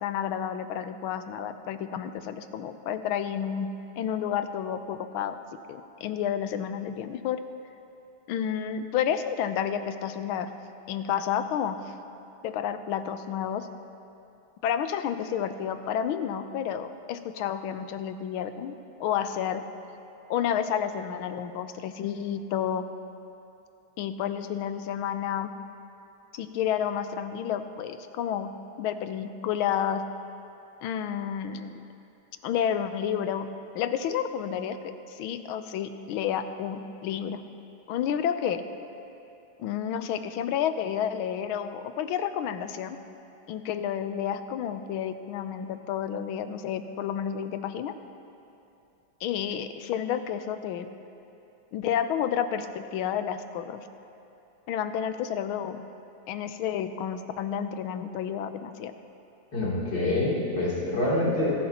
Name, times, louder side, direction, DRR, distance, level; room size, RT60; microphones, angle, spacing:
voice 1, 0.0-5.4 5.7-7.4 8.3-10.5 10.9-11.8 12.4-13.7 14.6-19.6 20.3-22.8 24.0-25.5 26.3-30.0 30.8-31.8 32.4-33.5 33.7-34.8 35.1-37.4 37.9-38.6 39.6-43.0 43.5-47.9 49.2-50.9 51.7-53.8 54.7-55.8 56.3-58.9, left 9 dB, 80° left, 10 dB, 1.4 m, -30 dB
voice 2, 59.5-61.5, left 2 dB, 55° left, -7 dB, 3.7 m, -26 dB
25.0 x 11.0 x 2.9 m, 2.8 s
omnidirectional pair, 2.3 m